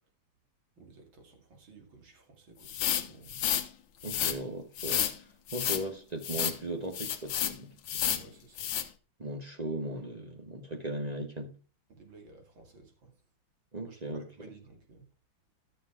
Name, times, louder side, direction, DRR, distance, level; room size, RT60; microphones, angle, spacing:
voice 1, 0.8-3.4 8.2-8.7 11.9-13.1 13.8-15.1, right 3 dB, 75° right, 3.1 m, -55 dB
sound 1, 2.7-3.7 4.0-4.4 4.8-5.1 5.5-5.8 6.2-6.6 6.9-7.5 7.9-8.2 8.6-8.8, left 10 dB, 80° left, 1.7 m, -30 dB
voice 2, 4.0-5.1 5.5-7.7 8.1-8.2 9.2-11.5 13.7-14.3, right 1 dB, 25° right, 1.1 m, -37 dB
13.0 x 6.8 x 3.7 m
omnidirectional pair, 2.2 m